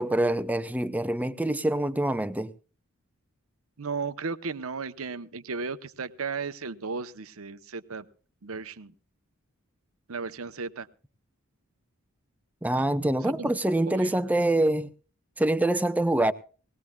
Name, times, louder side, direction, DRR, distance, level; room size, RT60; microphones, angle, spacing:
voice 1, 0.0-2.5 12.6-14.9 15.4-16.3, right 1 dB, 5° right, 0.6 m, -25 dB
voice 2, 3.8-8.1 8.4-8.9 10.1-10.9 13.2-13.6 13.9-14.1, right 4 dB, 75° right, 0.9 m, -35 dB
19.5 x 18.0 x 2.3 m
head